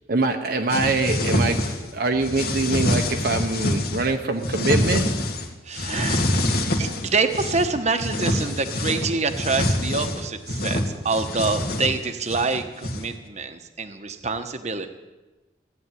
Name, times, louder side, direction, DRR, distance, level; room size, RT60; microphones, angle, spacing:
voice 1, 0.1-5.2, right 3 dB, 55° right, 0.9 m, -24 dB
sound 1, 0.7-1.9 2.2-4.1 4.4-5.5 5.7-7.7 8.0-13.1, left 1 dB, 60° left, 2.0 m, -25 dB
voice 2, 5.7-6.3 6.7-14.9, right 4 dB, 40° right, 1.1 m, -26 dB
15.5 x 9.5 x 9.3 m
head